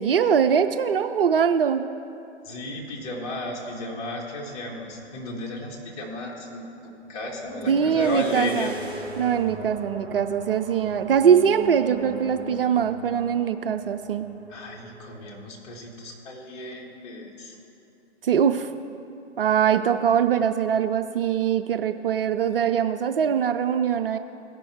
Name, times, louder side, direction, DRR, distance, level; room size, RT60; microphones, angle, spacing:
voice 1, 0.0-1.8 7.7-8.7 9.2-14.3 18.2-18.7 19.4-24.2, right 8 dB, 55° right, 8 dB, 0.5 m, -22 dB
voice 2, 2.4-8.7 14.5-17.6, left 2 dB, 35° left, -2 dB, 1.9 m, -34 dB
sound 1, 7.0-15.3, right 2 dB, 15° right, 0.9 m, -39 dB
17.0 x 6.0 x 3.5 m, 2.7 s
figure-of-eight pair, 125°, 35 cm